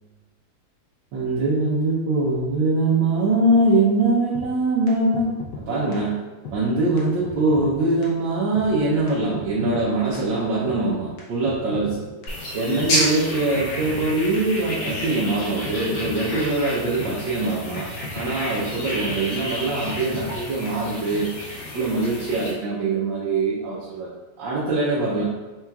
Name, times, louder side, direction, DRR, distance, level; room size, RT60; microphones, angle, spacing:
voice 1, 1.1-6.2 6.5-12.1 12.5-17.9 18.1-21.3 21.7-24.1 24.4-25.2, right 2 dB, 80° right, -7 dB, 1.5 m, -23 dB
sound 1, 4.3-4.5 4.9-5.0 5.1-5.6 5.9-6.0 6.4-6.6 7.0-7.1 7.2-7.8 8.0-8.1 8.6-8.7 9.1-9.2 9.3-9.9 10.1-10.2 10.7-10.8 11.2-12.0 12.2-12.3 12.8-12.9 13.3-13.4 13.6-14.1 14.3-14.4 14.9-15.0 15.4-15.5 15.7-16.2 16.4-16.5 17.0-17.1 17.5-17.6 17.8-18.3 18.6-18.7 19.1-19.2 19.6-19.7 19.9-20.4 20.7-20.8, left 4 dB, 70° left, 1.4 m, -35 dB
sound 2, 12.3-22.5, left 1 dB, 85° left, 1.8 m, -31 dB
4.5 x 3.6 x 2.3 m, 1.2 s
omnidirectional pair, 2.0 m